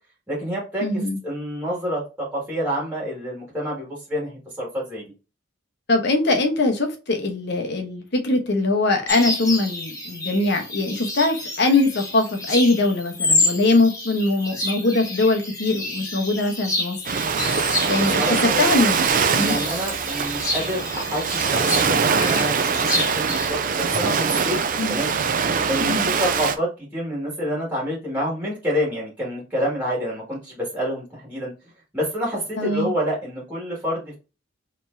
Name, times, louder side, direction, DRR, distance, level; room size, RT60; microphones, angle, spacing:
voice 1, 0.3-0.9 1.2-5.0 17.9-18.6 19.3-24.6 24.9-25.1 25.4-31.5 31.9-34.2, equal, 10° right, 1.9 m, -28 dB
voice 2, 0.8-1.2 5.9-17.0 17.9-19.0 19.3-19.6 24.8-25.0 25.8-26.1 32.6-32.9, left 2 dB, 55° left, 1.0 m, -22 dB
sound 1, 9.1-23.5, left 2 dB, 15° left, 1.3 m, -29 dB
Ocean, 17.0-26.5, right 6 dB, 40° right, 0.4 m, -23 dB
4.3 x 3.3 x 2.7 m
head